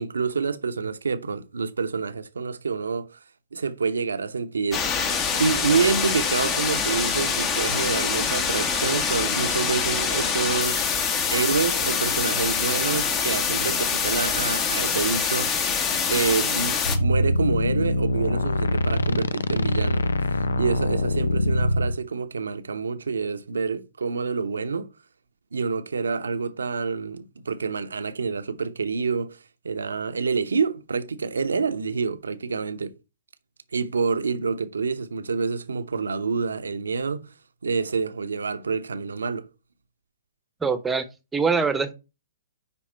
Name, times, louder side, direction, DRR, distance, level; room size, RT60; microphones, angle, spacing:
voice 1, 0.0-3.2 3.5-10.9 11.3-20.1 20.6-24.9 25.5-29.4 29.6-33.0 33.7-37.3 37.6-39.5, right 5 dB, 75° right, 0.9 m, -27 dB
sound 1, 4.7-17.0, left 6 dB, 25° left, 1.2 m, -25 dB
sound 2, 16.9-22.0, left 1 dB, 80° left, 0.5 m, -23 dB
voice 2, 40.6-41.0 41.3-41.9, right 5 dB, 10° right, 1.0 m, -23 dB
9.8 x 3.5 x 4.5 m
figure-of-eight pair, 120°, 0 cm